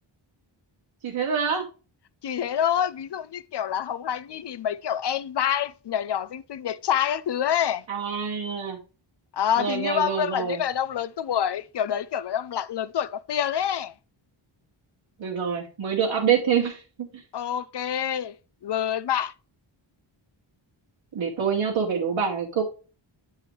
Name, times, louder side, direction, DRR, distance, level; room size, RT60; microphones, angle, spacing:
voice 1, 1.0-1.7 7.9-8.8 9.6-10.6 15.2-17.1 21.1-22.6, right 7 dB, 65° right, 2.4 m, -26 dB
voice 2, 2.2-7.8 9.3-13.9 17.3-18.3 18.6-19.3, left 9 dB, 55° left, 0.6 m, -27 dB
9.5 x 4.8 x 3.2 m
wide cardioid pair, 160°, 49 cm